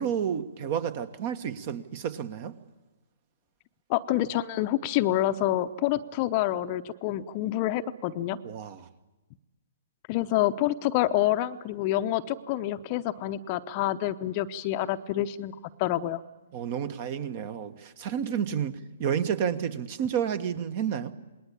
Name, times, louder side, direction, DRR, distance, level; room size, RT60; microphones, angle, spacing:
voice 1, 0.0-2.5 8.4-8.8 16.5-21.1, right 8 dB, 40° right, 12 dB, 1.5 m, -30 dB
voice 2, 3.9-8.4 10.1-16.2, left 14 dB, 35° left, 10 dB, 0.8 m, -27 dB
27.5 x 20.0 x 8.9 m, 1.2 s
figure-of-eight pair, 125°, 0 cm